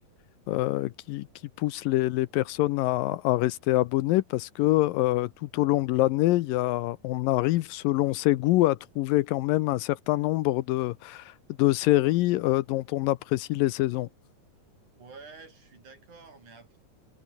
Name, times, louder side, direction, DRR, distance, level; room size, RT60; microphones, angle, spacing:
voice 1, 0.5-1.3 1.6-11.3 11.6-14.1, left 17 dB, 85° left, 2.4 m, -25 dB
voice 2, 15.0-16.8, right 4 dB, 55° right, 7.3 m, -49 dB
omnidirectional pair, 4.1 m